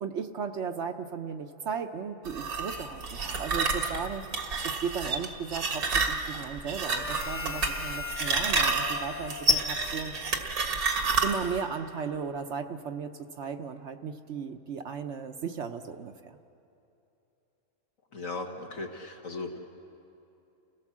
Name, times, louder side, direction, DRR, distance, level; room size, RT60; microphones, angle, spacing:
voice 1, 0.0-4.2 4.6-10.1 11.2-16.4, right 6 dB, 60° right, 7 dB, 0.9 m, -36 dB
sound 1, 2.2-11.6, right 3 dB, 90° right, 2.0 m, -29 dB
Harmonica, 6.8-10.6, left 5 dB, 40° left, 0.9 m, -40 dB
voice 2, 18.1-19.6, left 3 dB, 65° left, 1 dB, 2.2 m, -37 dB
30.0 x 17.0 x 7.3 m, 2.8 s
omnidirectional pair, 1.5 m